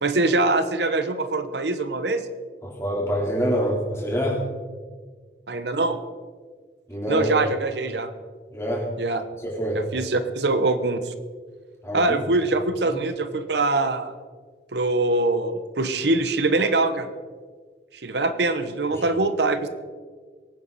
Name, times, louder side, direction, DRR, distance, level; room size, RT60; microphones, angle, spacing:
voice 1, 0.0-2.2 5.5-6.0 7.1-8.1 9.0-9.2 9.7-11.1 11.9-14.1 14.7-17.1 18.0-19.7, right 2 dB, 80° right, 10 dB, 1.0 m, -23 dB
voice 2, 2.6-4.4 6.9-7.3 8.5-8.9 9.4-9.8 11.8-12.2 12.9-13.0 18.9-19.1, equal, 15° left, -4 dB, 3.7 m, -26 dB
23.0 x 9.4 x 4.2 m, 1.5 s
head